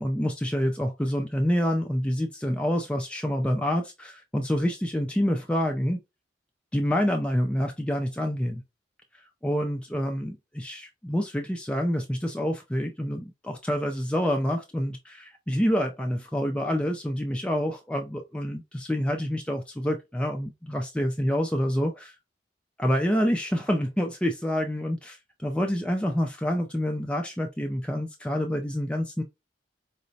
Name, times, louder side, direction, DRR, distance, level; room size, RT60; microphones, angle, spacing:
voice 1, 0.0-6.0 6.7-8.6 9.1-22.2 22.8-29.2, equal, 5° left, 0.3 m, -27 dB
4.8 x 2.1 x 2.6 m
head